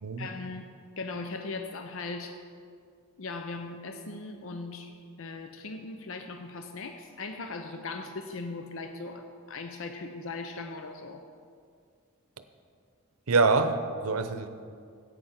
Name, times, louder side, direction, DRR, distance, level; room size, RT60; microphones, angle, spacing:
voice 1, 0.2-2.4 3.2-4.9 5.2-11.2, left 3 dB, 65° left, 6 dB, 0.6 m, -39 dB
voice 2, 13.3-14.5, right 3 dB, 80° right, 10 dB, 0.7 m, -25 dB
11.0 x 8.4 x 5.7 m, 2.2 s
head